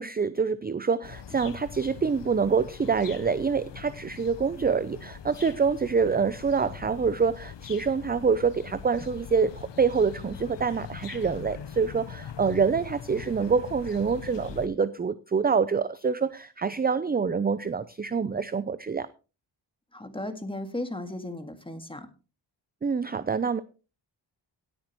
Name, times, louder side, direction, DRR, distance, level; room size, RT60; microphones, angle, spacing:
voice 1, 0.0-19.1 22.8-23.6, right 5 dB, 20° right, 15 dB, 0.5 m, -26 dB
sound 1, 1.0-14.7, left 8 dB, 65° left, 0.9 m, -42 dB
voice 2, 19.9-22.1, left 1 dB, 10° left, 8 dB, 1.9 m, -35 dB
17.5 x 8.9 x 3.1 m, 0.33 s
cardioid pair, 75°, 46 cm